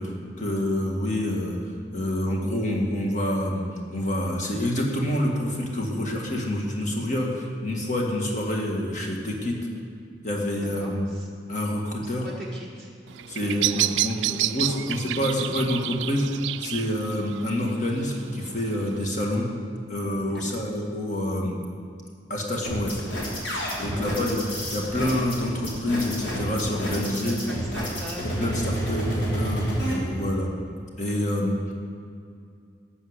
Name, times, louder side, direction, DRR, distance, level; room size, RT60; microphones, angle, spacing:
voice 1, 0.0-1.6 1.9-3.6 3.9-9.6 10.2-11.1 11.5-12.3 13.3-19.5 19.9-21.6 22.3-23.0 23.8-27.4 28.2-30.5 31.0-31.7, left 1 dB, 40° left, -1 dB, 1.8 m, -27 dB
voice 2, 10.5-11.3 12.0-12.9 13.3-15.0 15.3-15.7 20.3-20.6 23.8-24.2 27.2-29.1, equal, 5° left, -5 dB, 1.0 m, -41 dB
Bird vocalization bird call bird song, 13.1-19.1, right 14 dB, 80° right, 0.3 m, -30 dB
sound 1, 22.6-29.9, equal, 85° left, 3.3 m, -29 dB
12.0 x 6.6 x 8.1 m, 2.4 s
head